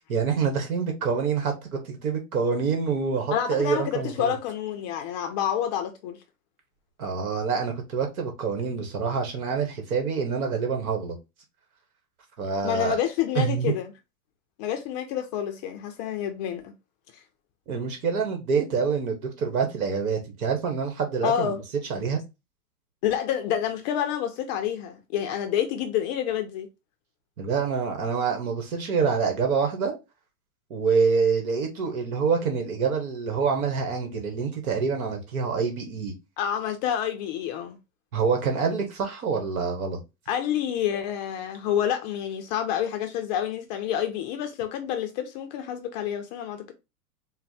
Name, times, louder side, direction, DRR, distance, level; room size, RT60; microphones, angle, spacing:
voice 1, 0.1-4.3 7.0-11.2 12.4-13.0 13.3-13.7 17.7-21.5 21.9-22.2 27.4-29.9 30.7-36.1 38.1-40.0, right 5 dB, 70° right, 1.3 m, -26 dB
voice 2, 3.3-6.2 12.6-13.9 14.6-16.7 21.2-21.6 23.0-26.7 36.4-37.8 40.3-46.7, left 10 dB, 30° left, 0.4 m, -28 dB
4.3 x 2.1 x 4.0 m
hypercardioid pair, 130°, 45 cm